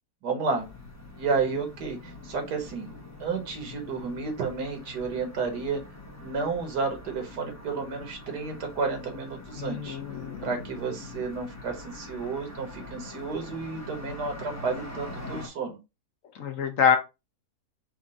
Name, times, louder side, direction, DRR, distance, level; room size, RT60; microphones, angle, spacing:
voice 1, 0.2-0.6 1.2-2.9 3.2-5.8 6.2-10.0 10.4-15.8, right 4 dB, 80° right, 4 dB, 1.8 m, -31 dB
sound 1, 0.6-15.5, left 2 dB, 15° left, 0.6 m, -43 dB
voice 2, 9.6-10.5 16.3-17.0, left 7 dB, 60° left, 6 dB, 1.0 m, -26 dB
4.4 x 2.4 x 3.9 m, 0.25 s
omnidirectional pair, 1.7 m